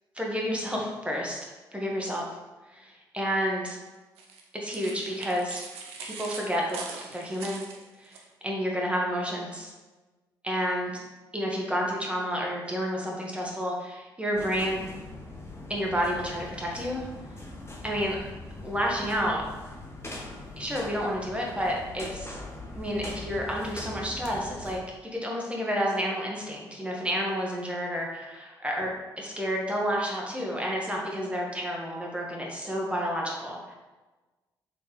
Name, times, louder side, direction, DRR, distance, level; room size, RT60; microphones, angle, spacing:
voice 1, 0.1-1.4 1.7-2.2 2.7-3.8 4.5-5.6 6.0-7.6 8.0-8.2 8.4-9.7 10.4-11.0 11.3-14.9 15.7-17.0 17.8-18.2 18.6-19.4 20.6-22.4 22.7-28.9 29.2-33.7, equal, 10° right, -2 dB, 1.4 m, -30 dB
sound 1, 4.2-8.2, right 4 dB, 70° right, 0.6 m, -41 dB
sound 2, 14.3-24.8, left 2 dB, 25° left, 1.0 m, -41 dB
4.6 x 3.4 x 3.2 m, 1.2 s
hypercardioid pair, 40°, 11 cm